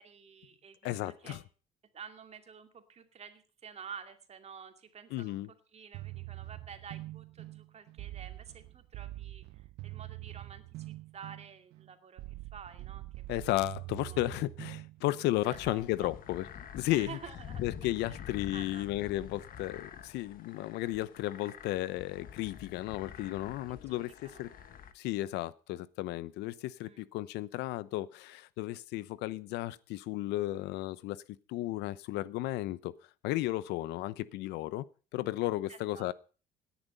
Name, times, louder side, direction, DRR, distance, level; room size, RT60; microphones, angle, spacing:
voice 1, 0.0-1.4 1.9-13.4 14.1-14.2 15.7-16.1 16.9-17.7 18.1-18.2 18.5-18.9 23.7-24.4 26.8-27.1 35.7-36.1, right 7 dB, 40° right, 2.5 m, -50 dB
voice 2, 0.8-1.4 5.1-5.5 13.3-16.4 16.7-17.2 17.6-24.5 24.9-31.2 31.5-32.9 33.2-34.9 35.1-36.1, left 16 dB, 90° left, 0.8 m, -34 dB
sound 1, 5.9-15.7, right 18 dB, 80° right, 0.7 m, -45 dB
sound 2, 15.4-24.9, left 8 dB, 55° left, 1.6 m, -47 dB
17.5 x 10.5 x 5.4 m
cardioid pair, 110°, 17 cm